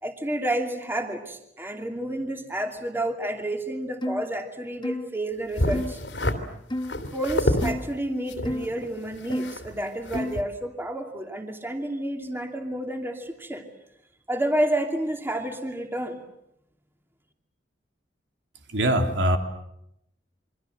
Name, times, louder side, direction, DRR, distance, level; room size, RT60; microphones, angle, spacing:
voice 1, 0.0-6.0 7.1-13.7 14.3-16.2, right 1 dB, 15° right, 4 dB, 2.7 m, -30 dB
sound 1, 4.0-4.3 4.8-5.1 5.7-5.9 6.7-7.0 7.6-7.9 8.4-8.7 9.3-9.6 10.1-10.4, left 1 dB, 25° left, 1.1 m, -30 dB
sound 2, 5.6-6.4 6.8-7.7 8.3-9.8 10.1-10.4, left 1 dB, 75° left, 3.1 m, -28 dB
voice 2, 18.7-19.4, right 1 dB, 80° right, 5 dB, 3.2 m, -22 dB
28.0 x 24.5 x 7.8 m, 0.80 s
head